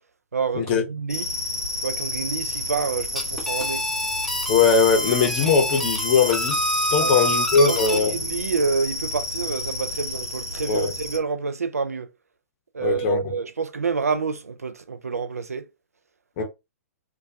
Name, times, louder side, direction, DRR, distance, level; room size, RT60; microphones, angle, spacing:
voice 1, 0.3-1.2 1.8-3.8 7.0-7.4 7.6-12.1 12.7-15.7, right 5 dB, 75° right, 0.4 m, -28 dB
sound 1, 1.1-11.2, left 1 dB, 80° left, 0.7 m, -31 dB
sound 2, 3.0-8.0, left 1 dB, 5° left, 0.3 m, -27 dB
voice 2, 4.5-6.6 6.9-8.1 10.7-10.9 12.8-13.3 16.4-16.5, left 5 dB, 35° left, 0.7 m, -20 dB
2.3 x 2.1 x 2.5 m
figure-of-eight pair, 115°, 8 cm